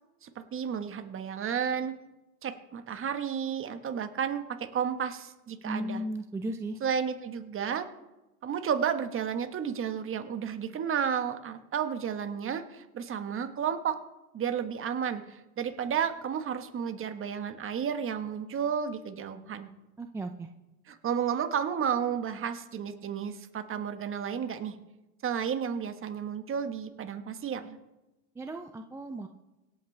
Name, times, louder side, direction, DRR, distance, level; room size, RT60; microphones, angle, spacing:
voice 1, 0.2-1.9 2.4-6.0 6.8-7.9 8.4-14.0 14.3-19.7 20.9-24.7 25.2-27.8, right 7 dB, 30° right, 9 dB, 1.3 m, -32 dB
voice 2, 5.6-6.8 20.0-20.5 28.4-29.3, right 1 dB, 5° right, 6 dB, 0.4 m, -35 dB
25.0 x 8.6 x 3.3 m, 1.0 s
hypercardioid pair, 100°, 45 cm